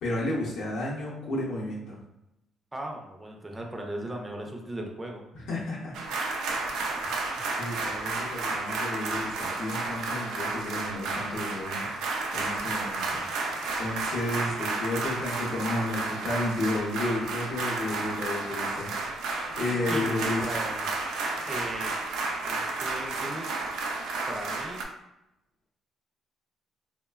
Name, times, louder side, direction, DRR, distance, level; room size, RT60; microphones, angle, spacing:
voice 1, 0.0-2.0 5.3-5.9 7.0-11.9 12.3-13.2 13.8-18.9 19.3-20.5, left 1 dB, 70° left, -5 dB, 0.7 m, -32 dB
voice 2, 2.7-5.3 19.9-20.9 21.4-21.9 22.5-23.5 24.3-24.9, right 1 dB, 10° right, 1 dB, 0.4 m, -37 dB
sound 1, 5.9-24.8, right 3 dB, 85° right, 0.4 m, -32 dB
3.1 x 2.0 x 2.3 m, 0.88 s
cardioid pair, 160°, 0 cm